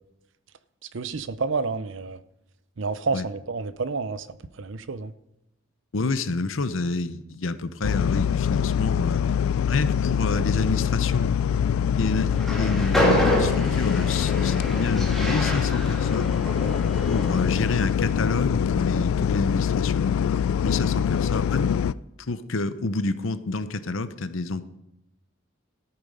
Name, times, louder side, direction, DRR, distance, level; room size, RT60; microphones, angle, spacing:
voice 1, 0.9-2.2 2.8-5.1, right 4 dB, 65° right, 15 dB, 0.6 m, -29 dB
voice 2, 5.9-9.3 9.7-11.3 12.0-16.4 17.1-20.0 20.6-21.7 22.3-24.6, left 3 dB, 75° left, 12 dB, 0.8 m, -28 dB
sound 1, 7.8-21.9, left 8 dB, 90° left, 0.3 m, -24 dB
Train, 12.3-17.6, equal, ahead, 2.9 m, -27 dB
13.5 x 8.9 x 5.5 m, 0.87 s
head